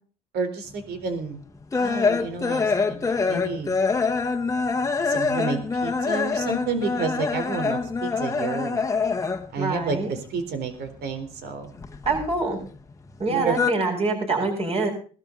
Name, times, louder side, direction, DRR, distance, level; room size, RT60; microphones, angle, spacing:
voice 1, 0.3-1.4 1.8-3.7 5.1-8.8 9.5-11.7 13.3-13.6, right 4 dB, 75° right, 8 dB, 4.0 m, -30 dB
sound 1, 0.9-9.6 9.9-11.1 11.4-12.8 13.1-13.7, left 4 dB, 20° left, 1.4 m, -25 dB
voice 2, 9.6-10.1 12.0-12.6 13.2-14.9, right 3 dB, 35° right, 1 dB, 7.8 m, -25 dB
19.5 x 12.5 x 3.9 m, 0.41 s
cardioid pair, 110°, 17 cm